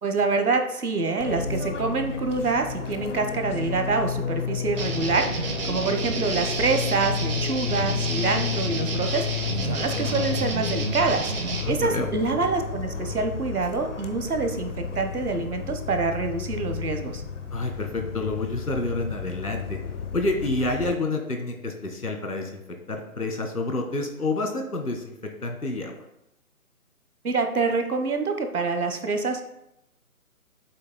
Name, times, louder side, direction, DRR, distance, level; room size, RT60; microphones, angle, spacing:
voice 1, 0.0-11.3 11.7-17.2 27.2-29.4, right 4 dB, 80° right, 6 dB, 1.3 m, -26 dB
Fixed-wing aircraft airplane, 1.2-20.9, left 7 dB, 55° left, 1.0 m, -32 dB
sound 1, 4.8-11.6, right 4 dB, 40° right, 1.4 m, -30 dB
voice 2, 11.5-12.1 17.5-19.8 20.1-22.6 22.9-25.2 25.4-25.9, left 2 dB, 85° left, 3 dB, 1.9 m, -28 dB
10.0 x 7.5 x 2.2 m, 0.84 s
figure-of-eight pair, 145°, 44 cm